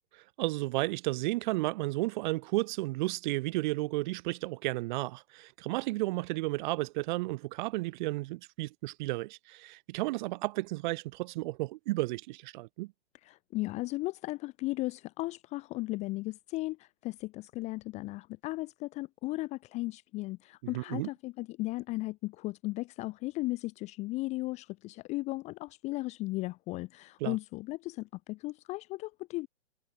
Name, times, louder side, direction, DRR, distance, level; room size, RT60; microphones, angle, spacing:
voice 1, 0.4-12.9 20.7-21.1 27.2-27.4, right 20 dB, 40° right, 1.6 m, -33 dB
voice 2, 13.2-29.5, left 20 dB, 20° left, 0.6 m, -36 dB
hypercardioid pair, 130°, 35 cm